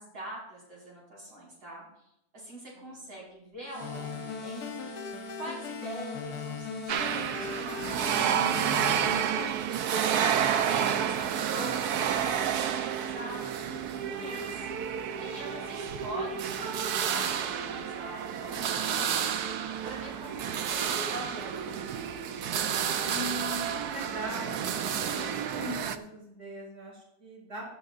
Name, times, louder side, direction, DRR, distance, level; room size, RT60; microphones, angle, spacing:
voice 1, 0.0-1.9 2.3-10.4 10.7-14.7 15.2-19.3 19.6-22.4, right 1 dB, 80° right, -5 dB, 5.8 m, -44 dB
sound 1, 3.7-7.4, equal, 20° right, 5.2 m, -43 dB
sound 2, 3.8-9.5, left 8 dB, 60° left, 1.2 m, -39 dB
sound 3, 6.9-26.0, right 8 dB, 65° right, 1.2 m, -30 dB
voice 2, 23.0-27.6, equal, 40° right, -3 dB, 5.7 m, -40 dB
15.5 x 13.0 x 2.5 m, 0.83 s
omnidirectional pair, 2.0 m